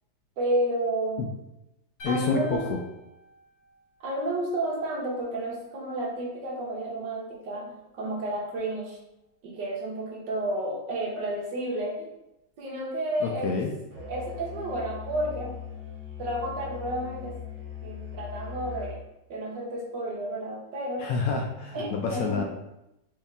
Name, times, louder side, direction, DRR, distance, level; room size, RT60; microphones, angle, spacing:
voice 1, 0.4-1.3 2.0-2.6 4.0-9.0 9.4-12.1 12.6-13.6 14.1-15.5 16.2-17.3 17.8-19.0 19.3-21.1 21.7-22.4, right 1 dB, 75° right, -2 dB, 1.7 m, -31 dB
voice 2, 2.0-2.8 13.2-13.7 21.0-22.4, left 4 dB, 70° left, 1 dB, 0.9 m, -28 dB
sound 1, 2.0-4.3, left 2 dB, 55° left, 1.3 m, -46 dB
Musical instrument, 13.9-19.0, left 6 dB, 50° right, 1.5 m, -39 dB
4.7 x 3.2 x 3.3 m, 0.90 s
omnidirectional pair, 2.0 m